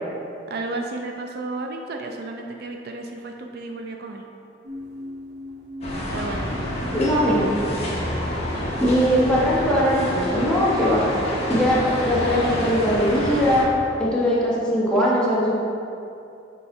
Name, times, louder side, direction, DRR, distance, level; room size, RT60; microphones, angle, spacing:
voice 1, 0.5-4.2 6.1-6.5 12.0-12.4, right 2 dB, 60° right, 3 dB, 0.4 m, -33 dB
sound 1, 4.6-11.6, equal, 75° right, 0.8 m, -40 dB
sound 2, 5.8-13.6, equal, 35° left, 1.2 m, -28 dB
voice 2, 6.9-7.5 8.8-11.0 11.5-13.7 14.0-15.6, equal, 5° left, -8 dB, 1.3 m, -20 dB
6.9 x 4.3 x 3.7 m, 2.6 s
head